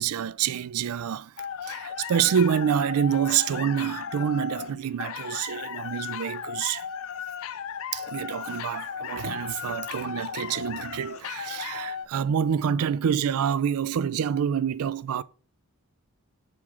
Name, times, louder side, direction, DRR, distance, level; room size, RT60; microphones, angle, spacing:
voice 1, 0.0-1.3 1.6-6.9 7.9-15.2, right 8 dB, 70° right, 0.4 m, -27 dB
sound 1, 1.4-12.1, left 8 dB, 65° left, 0.4 m, -36 dB
6.5 x 3.7 x 5.8 m
head